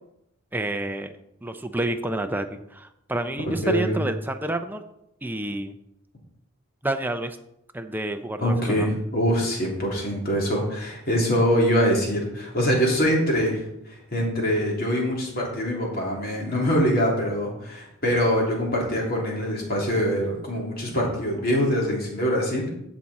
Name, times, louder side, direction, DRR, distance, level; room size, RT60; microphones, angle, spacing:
voice 1, 0.5-1.1 1.4-4.8 5.2-5.7 6.8-7.4 7.7-8.9, right 1 dB, 10° right, 6 dB, 0.6 m, -29 dB
voice 2, 3.6-4.0 8.4-22.7, equal, 45° left, -2 dB, 3.0 m, -24 dB
15.0 x 6.1 x 4.2 m, 0.81 s
head